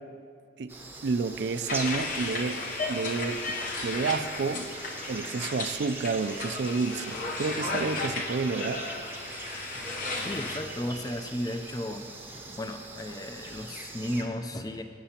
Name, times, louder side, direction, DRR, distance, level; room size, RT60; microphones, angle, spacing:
sound 1, 0.7-14.2, right 2 dB, 10° right, 0.7 m, -42 dB
voice 1, 1.0-2.6 2.9-3.6 3.8-4.7 5.1-8.8, right 4 dB, 65° right, 12 dB, 0.4 m, -30 dB
sound 2, 1.7-10.6, left 3 dB, 50° left, 0.8 m, -34 dB
voice 2, 10.2-12.1 12.6-14.8, left 1 dB, 20° left, 6 dB, 0.5 m, -34 dB
16.0 x 7.8 x 2.9 m, 2.3 s
head